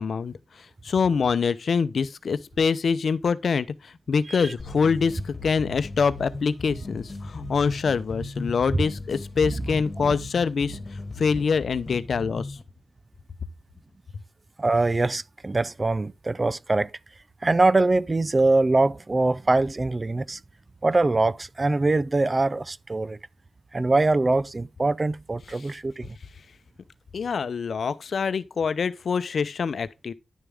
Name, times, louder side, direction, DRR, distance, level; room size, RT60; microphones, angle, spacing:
voice 1, 0.0-10.8 11.2-12.6 25.5-25.7 27.1-30.1, left 5 dB, 70° left, 0.7 m, -25 dB
sound 1, 4.6-12.6, left 2 dB, 35° left, 2.3 m, -37 dB
voice 2, 14.6-16.9 17.4-20.4 20.8-23.2 23.7-26.2, right 2 dB, 35° right, 0.5 m, -23 dB
10.5 x 6.8 x 3.5 m
cardioid pair, 60°, 0 cm